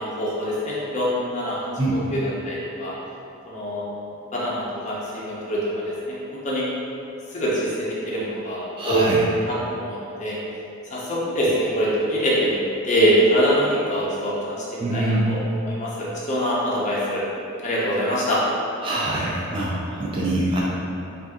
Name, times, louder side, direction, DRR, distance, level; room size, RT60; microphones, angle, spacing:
voice 1, 0.0-1.6 2.1-2.9 3.4-3.8 4.3-6.7 7.3-9.1 9.4-10.4 10.9-12.6 12.9-17.2 17.6-18.4, equal, 35° left, -7 dB, 0.6 m, -24 dB
voice 2, 8.8-9.2 14.8-15.4 18.8-20.6, right 1 dB, 25° right, -5 dB, 0.4 m, -24 dB
2.6 x 2.4 x 3.5 m, 2.7 s
head